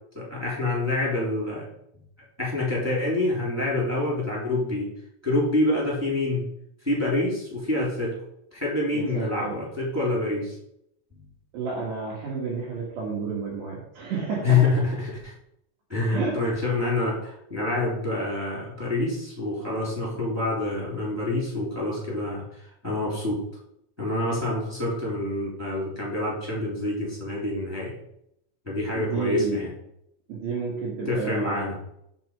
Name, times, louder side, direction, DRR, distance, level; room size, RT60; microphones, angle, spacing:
voice 1, 0.1-1.6 2.4-4.9 5.2-6.4 6.8-8.1 8.5-10.6 14.4-15.3 15.9-23.4 24.0-27.9 28.6-29.7 31.0-31.8, left 2 dB, 5° right, -5 dB, 2.5 m, -26 dB
voice 2, 8.9-9.6 11.5-14.6 16.1-16.4 29.0-29.6 30.3-31.6, right 5 dB, 65° right, -5 dB, 3.4 m, -31 dB
8.7 x 6.0 x 4.8 m, 0.75 s
omnidirectional pair, 5.9 m